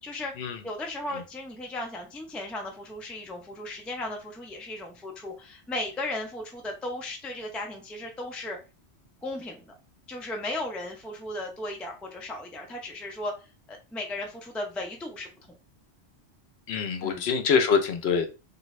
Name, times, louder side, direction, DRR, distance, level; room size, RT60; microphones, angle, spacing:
voice 1, 0.0-0.3 0.6-8.6 9.2-9.7 10.1-13.4 13.7-15.3 17.0-17.3, left 1 dB, ahead, 0.4 m, -36 dB
voice 2, 16.7-18.3, left 6 dB, 70° left, 0.9 m, -24 dB
3.2 x 2.6 x 3.1 m
omnidirectional pair, 1.1 m